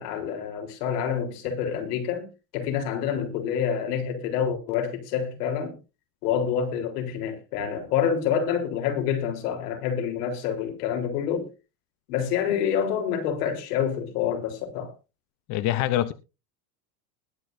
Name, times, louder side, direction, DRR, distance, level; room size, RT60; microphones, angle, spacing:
voice 1, 0.0-2.3 2.5-5.8 6.2-11.5 12.1-14.9, left 8 dB, 80° left, 3.9 m, -27 dB
voice 2, 15.5-16.1, left 13 dB, 40° left, 0.7 m, -24 dB
20.5 x 8.5 x 2.6 m
cardioid pair, 160°, 46 cm